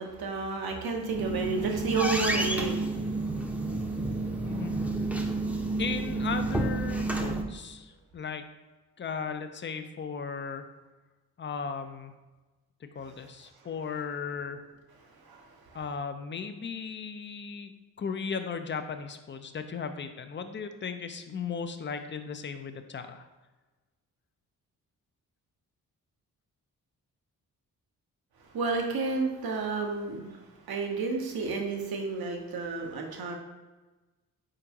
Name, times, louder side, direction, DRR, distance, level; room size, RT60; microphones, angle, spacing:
voice 1, 0.0-4.7 5.1-5.6 15.2-15.8 28.5-30.4 30.7-33.4, right 4 dB, 65° right, 2 dB, 0.9 m, -32 dB
sound 1, 0.9-7.4, right 2 dB, 5° right, 0.7 m, -30 dB
voice 2, 4.4-4.7 5.8-8.4 9.0-10.7 11.4-12.1 12.8-14.6 15.7-17.7 18.0-23.3, left 6 dB, 30° left, 8 dB, 0.5 m, -36 dB
4.3 x 3.8 x 2.9 m, 1.2 s
supercardioid pair, 45°, 40 cm